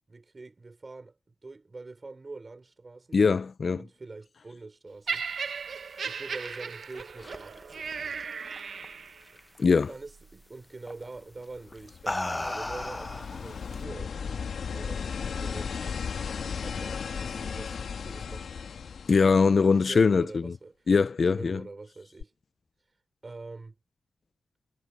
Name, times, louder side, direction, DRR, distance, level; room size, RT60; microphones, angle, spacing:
voice 1, 0.1-3.2 3.7-5.2 6.0-7.9 9.9-15.8 16.6-18.5 19.8-20.9 21.3-22.3 23.2-23.8, right 3 dB, 30° right, 5.7 m, -45 dB
voice 2, 3.1-3.8 9.6-9.9 19.1-20.5 20.9-21.6, left 5 dB, 50° left, 0.6 m, -22 dB
Laughter, 5.1-9.3 10.1-10.3, right 6 dB, 65° right, 0.9 m, -36 dB
sound 1, 6.0-8.8 9.2-9.6 10.9-11.1 11.7-13.8, left 2 dB, 15° left, 0.9 m, -36 dB
sound 2, 11.6-20.1 22.2-22.3, left 6 dB, 80° left, 1.6 m, -36 dB
wide cardioid pair, 120°, 0 cm